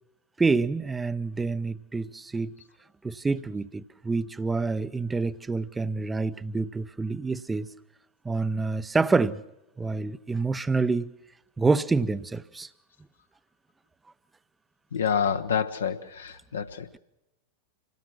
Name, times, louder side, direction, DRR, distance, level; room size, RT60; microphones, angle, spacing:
voice 1, 0.4-2.5 3.0-7.7 8.2-9.4 9.8-11.1 11.6-12.7, right 3 dB, 10° right, 0.6 m, -27 dB
voice 2, 14.9-17.0, left 7 dB, 70° left, 0.9 m, -28 dB
26.5 x 17.5 x 5.9 m
figure-of-eight pair, 90°, 0 cm